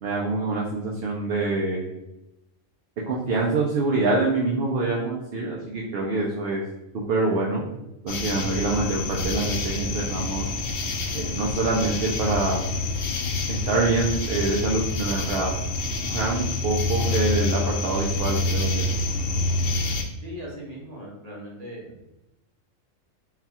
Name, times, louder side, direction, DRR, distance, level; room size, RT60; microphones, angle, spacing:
voice 1, 0.0-1.9 3.1-6.6 7.1-7.6 8.0-10.4 11.1-12.6 13.5-15.5 16.0-18.9, right 3 dB, 60° right, -2 dB, 0.7 m, -25 dB
sound 1, 8.1-20.0, left 2 dB, 60° left, 0.7 m, -27 dB
voice 2, 20.2-21.9, equal, 30° right, -4 dB, 1.3 m, -39 dB
4.0 x 2.3 x 4.1 m, 0.92 s
omnidirectional pair, 1.3 m